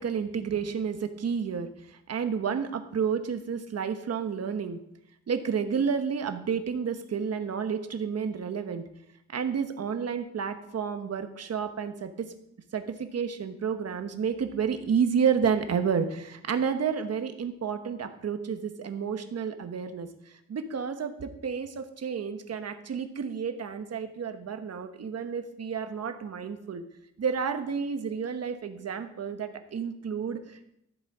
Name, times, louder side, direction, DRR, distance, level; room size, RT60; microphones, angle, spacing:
voice 1, 0.0-4.8 5.3-8.8 9.3-12.3 12.7-26.8 27.2-30.8, right 6 dB, 60° right, 7 dB, 1.2 m, -30 dB
13.5 x 7.5 x 4.9 m, 0.80 s
wide cardioid pair, 115°, 29 cm